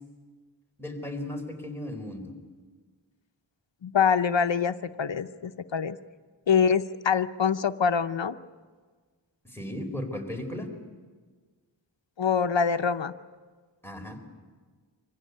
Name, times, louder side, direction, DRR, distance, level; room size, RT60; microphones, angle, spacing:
voice 1, 0.8-2.3 9.4-10.7 13.8-14.2, left 1 dB, 5° left, 2 dB, 4.2 m, -36 dB
voice 2, 3.8-6.0 6.5-8.4 12.2-13.1, left 6 dB, 80° left, 10 dB, 0.7 m, -25 dB
25.5 x 15.5 x 9.6 m, 1.5 s
wide cardioid pair, 45°, 44 cm